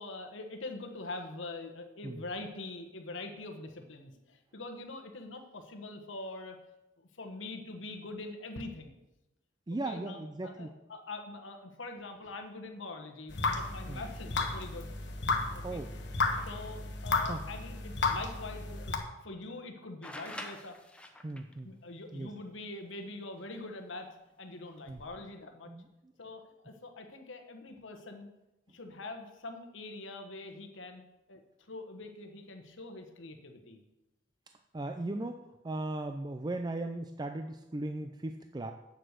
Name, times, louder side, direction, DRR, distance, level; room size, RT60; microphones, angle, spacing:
voice 1, 0.0-6.6 7.0-9.0 9.8-14.9 15.5-15.8 16.4-19.0 19.2-20.8 21.3-21.4 21.6-24.1 24.4-25.7 26.2-28.3 28.7-31.0 31.3-31.4 31.7-33.8, left 2 dB, 75° left, 5 dB, 1.3 m, -44 dB
voice 2, 9.7-10.7 13.9-14.0 15.6-15.9 17.3-17.4 21.2-21.7 22.1-22.3 24.9-25.0 25.7-25.9 34.7-38.7, right 2 dB, 20° right, 6 dB, 0.4 m, -37 dB
sound 1, 13.3-19.0, left 3 dB, 60° left, 1.2 m, -33 dB
sound 2, 20.0-21.5 23.4-23.5 24.7-25.1, left 1 dB, 5° left, 0.8 m, -45 dB
8.2 x 7.7 x 6.6 m, 0.94 s
head